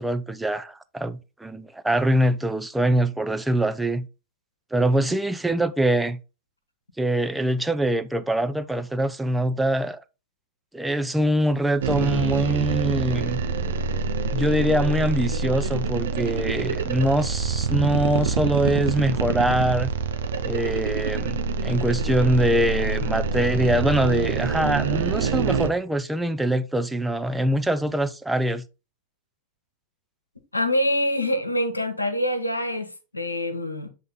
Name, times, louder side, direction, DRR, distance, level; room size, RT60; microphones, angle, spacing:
voice 1, 0.0-4.1 4.7-6.2 7.0-10.0 10.7-13.4 14.3-19.9 20.4-21.4 21.6-28.6, right 1 dB, 5° right, 0.5 m, -23 dB
sound 1, 11.8-25.7, right 5 dB, 60° right, 0.8 m, -26 dB
voice 2, 30.5-33.9, left 1 dB, 85° left, 1.1 m, -25 dB
7.7 x 3.6 x 3.9 m
figure-of-eight pair, 90°, 0 cm